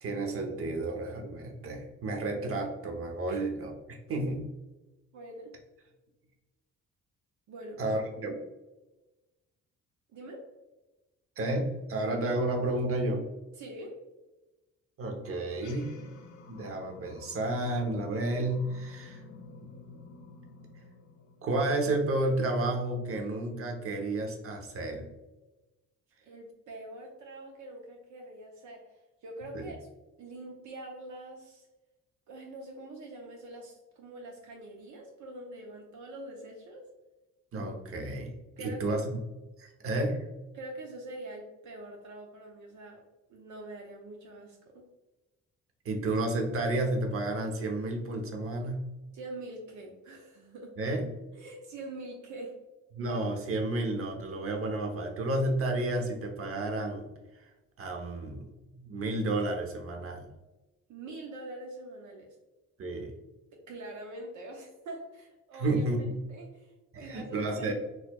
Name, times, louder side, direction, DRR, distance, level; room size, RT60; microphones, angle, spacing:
voice 1, 0.0-4.4 7.8-8.3 11.4-13.2 15.0-15.9 16.5-19.2 19.6-19.7 21.4-25.1 29.5-29.7 37.5-39.2 39.6-40.3 45.8-48.9 50.8-51.1 52.9-57.1 57.3-57.4 57.8-58.5 58.7-60.3 62.8-63.1 65.6-66.2 66.9-67.7, right 2 dB, 45° right, 2 dB, 0.9 m, -31 dB
voice 2, 5.1-5.5 7.5-7.8 10.1-10.5 13.6-14.0 26.2-29.9 30.2-31.7 32.3-36.9 38.6-39.0 40.5-43.0 43.3-44.8 49.1-50.7 51.3-52.5 60.9-62.4 63.7-65.8 66.3-67.7, right 1 dB, 70° right, 0 dB, 0.7 m, -44 dB
sound 1, 15.5-22.2, left 4 dB, 70° left, 0.7 m, -51 dB
4.0 x 3.0 x 2.3 m, 1.1 s
cardioid pair, 90°, 30 cm